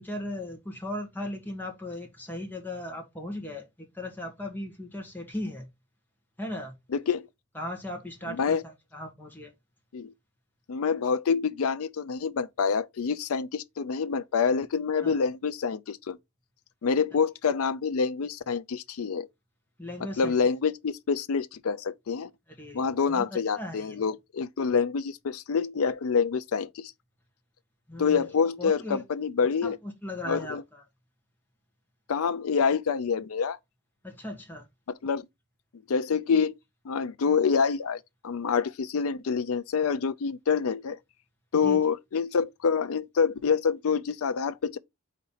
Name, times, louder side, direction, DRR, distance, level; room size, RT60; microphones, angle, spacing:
voice 1, 0.0-5.7 6.4-6.7 7.5-9.5 15.0-15.2 19.8-20.3 22.6-23.3 23.6-24.0 27.9-28.3 28.6-29.0 29.6-30.8 34.0-34.7 41.5-41.8, left 1 dB, 10° left, 1.6 m, -37 dB
voice 2, 6.9-7.3 8.3-8.6 9.9-10.1 10.7-16.2 16.8-19.3 20.2-22.3 22.7-26.9 28.0-29.8 30.3-30.6 32.1-33.6 34.9-35.3 35.9-36.5 36.9-41.0 41.5-44.8, left 6 dB, 75° left, 0.4 m, -27 dB
4.2 x 4.1 x 5.5 m
head